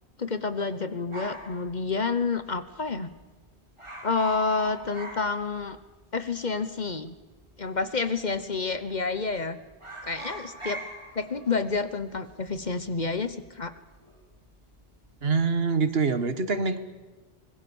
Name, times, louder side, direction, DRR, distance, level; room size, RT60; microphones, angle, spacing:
voice 1, 0.2-3.1 4.0-5.8 6.1-7.1 7.6-9.6 10.0-10.8 11.1-13.7, left 4 dB, 45° left, 12 dB, 1.2 m, -29 dB
sound 1, 1.1-2.6 2.8-2.9 3.2-3.4 3.7-6.0 6.3-6.4 7.2-7.8 8.2-8.4 8.7-9.4 9.7-14.3 14.6-15.1, right 1 dB, 25° right, 4.1 m, -42 dB
voice 2, 15.2-16.8, right 4 dB, 65° right, 11 dB, 1.6 m, -25 dB
25.5 x 20.5 x 7.2 m, 1.2 s
omnidirectional pair, 1.1 m